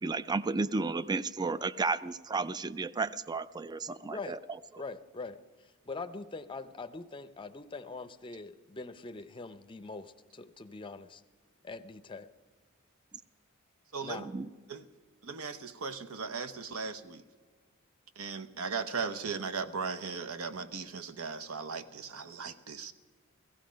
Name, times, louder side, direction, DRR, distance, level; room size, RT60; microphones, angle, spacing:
voice 1, 0.0-4.4 14.2-14.5, right 3 dB, 20° right, 17 dB, 0.3 m, -33 dB
voice 2, 4.8-5.4 5.9-11.2 11.6-12.3 14.0-14.3, left 3 dB, 25° left, 11 dB, 0.6 m, -43 dB
voice 3, 13.9-14.3 14.7-14.8 15.2-17.2 18.2-22.9, right 5 dB, 70° right, 9 dB, 0.9 m, -37 dB
16.5 x 15.0 x 5.2 m, 1.5 s
head